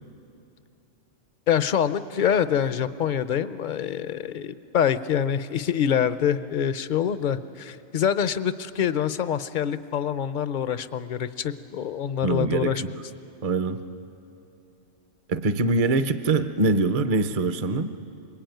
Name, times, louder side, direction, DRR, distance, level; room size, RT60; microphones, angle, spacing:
voice 1, 1.5-12.8, left 8 dB, 45° left, 13 dB, 0.7 m, -25 dB
voice 2, 12.2-12.9 13.4-13.8 15.3-18.0, right 3 dB, 35° right, 9 dB, 0.6 m, -24 dB
25.0 x 21.5 x 9.2 m, 2.8 s
omnidirectional pair, 1.4 m